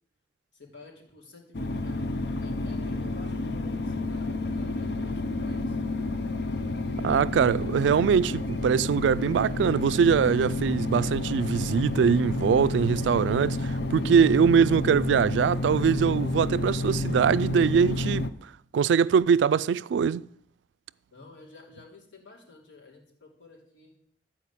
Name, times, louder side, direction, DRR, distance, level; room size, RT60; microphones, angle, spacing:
voice 1, 0.5-5.8 21.1-24.0, left 3 dB, 90° left, 3.3 m, -51 dB
sound 1, 1.5-18.3, left 2 dB, 65° left, 0.7 m, -30 dB
voice 2, 7.0-18.3 18.7-20.2, right 6 dB, 85° right, 0.3 m, -22 dB
13.5 x 4.8 x 8.3 m
head